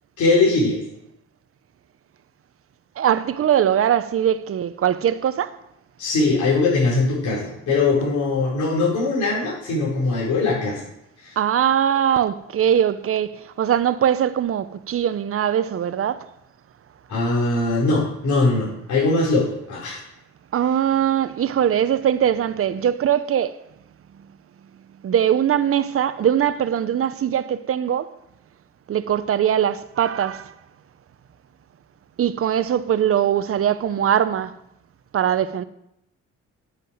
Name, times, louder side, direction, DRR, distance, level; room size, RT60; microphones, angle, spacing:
voice 1, 0.2-0.8 6.0-10.8 11.2-11.4 17.1-20.0, left 3 dB, 70° left, 5.0 m, -21 dB
voice 2, 3.0-5.5 11.4-16.3 20.5-23.5 25.0-28.1 28.9-30.5 32.2-34.5 35.1-35.6, right 9 dB, 45° right, 0.8 m, -21 dB
11.0 x 7.6 x 7.8 m
cardioid pair, 90°, 30 cm